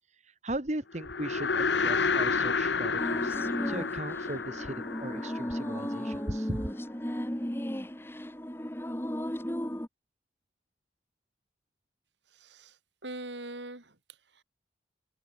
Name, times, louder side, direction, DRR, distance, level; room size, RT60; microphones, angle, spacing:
voice 1, 0.2-6.7, right 1 dB, 40° right, 1.7 m, -38 dB
sound 1, 1.0-6.4, left 4 dB, 85° left, 1.2 m, -30 dB
sound 2, 3.0-9.9, equal, 15° left, 1.6 m, -35 dB
voice 2, 12.3-14.4, right 2 dB, 85° right, 5.5 m, -43 dB
head